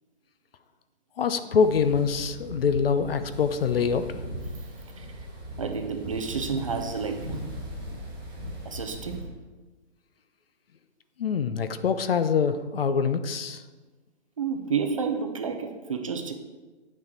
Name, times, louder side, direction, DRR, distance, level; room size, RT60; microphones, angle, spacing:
voice 1, 1.2-4.2 11.2-13.6, left 6 dB, 55° left, 11 dB, 0.7 m, -25 dB
sound 1, 1.6-9.2, equal, 10° right, 1.8 m, -38 dB
voice 2, 5.6-7.4 8.6-9.3 14.4-16.3, right 5 dB, 30° right, 6 dB, 0.5 m, -30 dB
9.4 x 6.3 x 4.4 m, 1.3 s
hypercardioid pair, 160°, 35 cm